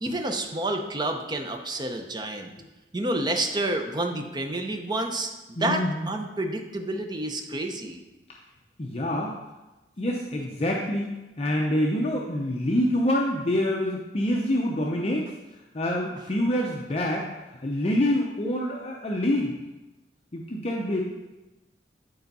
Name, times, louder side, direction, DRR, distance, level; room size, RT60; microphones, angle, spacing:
voice 1, 0.0-2.5 2.9-8.0, right 1 dB, 25° right, 4 dB, 0.7 m, -29 dB
voice 2, 5.6-6.1 8.8-9.3 10.0-15.3 15.7-19.5 20.3-21.0, left 1 dB, 35° left, -1 dB, 0.6 m, -26 dB
9.5 x 4.5 x 4.1 m, 1.1 s
head